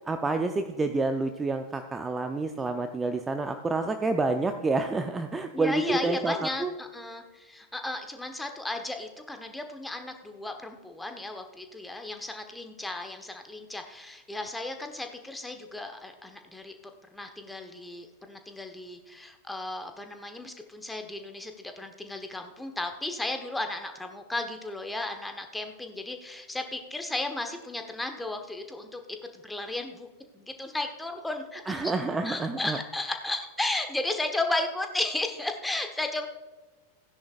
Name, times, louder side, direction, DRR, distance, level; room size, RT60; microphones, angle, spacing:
voice 1, 0.0-6.7 31.7-32.8, right 3 dB, 15° right, 7 dB, 0.6 m, -28 dB
voice 2, 5.5-16.7 17.1-29.0 29.3-30.1 30.3-31.9 32.2-36.3, left 2 dB, 5° left, 5 dB, 1.2 m, -34 dB
16.0 x 10.0 x 2.5 m, 1.2 s
figure-of-eight pair, 90°, 0 cm